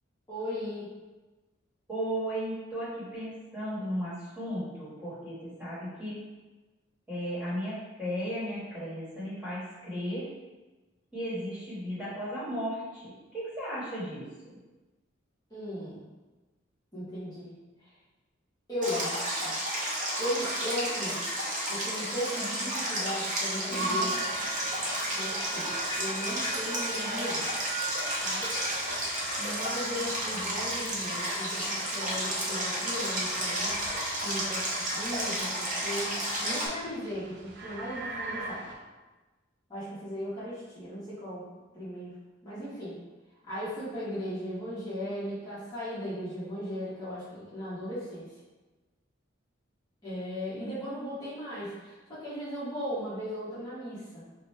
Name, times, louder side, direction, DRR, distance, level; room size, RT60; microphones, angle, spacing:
voice 1, 0.3-0.9 15.5-16.0 16.9-17.5 18.7-19.6 20.2-21.2 21.7-24.2 25.1-25.7 26.0-27.5 28.2-28.5 29.4-33.8 34.2-38.6 39.7-41.5 41.7-42.1 42.4-42.9 43.4-48.3 50.0-54.3, equal, 20° left, -12 dB, 1.1 m, -37 dB
voice 2, 1.9-6.2 7.1-10.3 11.1-14.5, equal, 5° right, -10 dB, 1.5 m, -35 dB
Stream, 18.8-36.7, right 1 dB, 40° right, 0.9 m, -32 dB
sound 1, 23.7-38.7, right 2 dB, 60° right, 0.6 m, -40 dB
4.9 x 2.3 x 3.2 m, 1.2 s
head